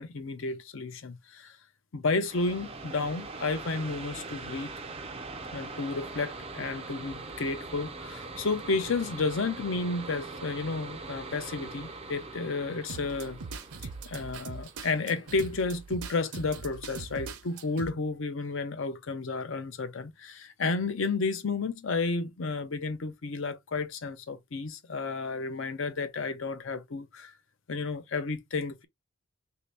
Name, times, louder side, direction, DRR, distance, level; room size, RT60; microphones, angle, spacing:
voice 1, 0.0-1.6 1.9-4.7 5.5-13.4 14.0-27.3 27.7-28.9, left 3 dB, 60° left, 0.6 m, -32 dB
sound 1, 2.2-15.6, right 3 dB, 25° right, 0.4 m, -42 dB
sound 2, 12.9-17.9, right 4 dB, 80° right, 0.7 m, -41 dB
3.1 x 2.8 x 3.3 m
head